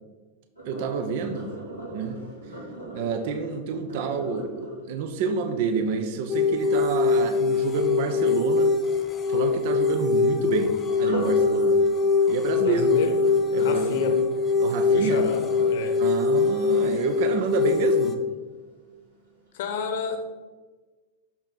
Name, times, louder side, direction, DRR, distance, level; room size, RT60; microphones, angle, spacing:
voice 1, 0.6-1.5 1.9-2.2 2.9-8.7 9.3-11.8 12.3-12.9 13.5-14.1 14.6-15.2 16.0-18.2, right 5 dB, 50° right, 7 dB, 0.7 m, -28 dB
Sink (filling or washing), 0.6-6.5 10.9-17.9 18.4-18.8 19.3-19.4, right 1 dB, 80° right, 2.3 m, -39 dB
sound 1, 6.3-18.2, left 4 dB, 20° left, 0.8 m, -23 dB
voice 2, 12.6-13.2 13.6-14.2 14.9-16.0 19.5-20.3, left 6 dB, 55° left, 6 dB, 1.0 m, -30 dB
6.4 x 5.9 x 4.0 m, 1.3 s
figure-of-eight pair, 90°, 0 cm